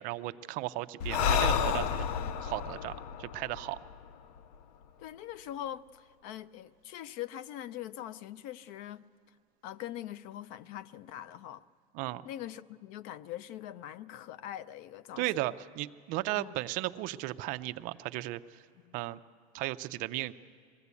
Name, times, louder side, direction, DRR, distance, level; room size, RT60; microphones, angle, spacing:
voice 1, 0.0-2.1 2.4-2.9 3.2-3.8 11.9-12.2 15.2-18.6 18.9-19.2 19.5-20.3, right 17 dB, 45° right, 0.5 m, -35 dB
Breathing, 1.0-4.5, left 7 dB, 90° left, 0.6 m, -31 dB
voice 2, 5.0-9.1 9.6-11.6 12.2-15.5 16.3-16.5 18.8-19.0, left 12 dB, 50° left, 0.5 m, -42 dB
22.0 x 15.5 x 8.3 m
cardioid pair, 165°, 18 cm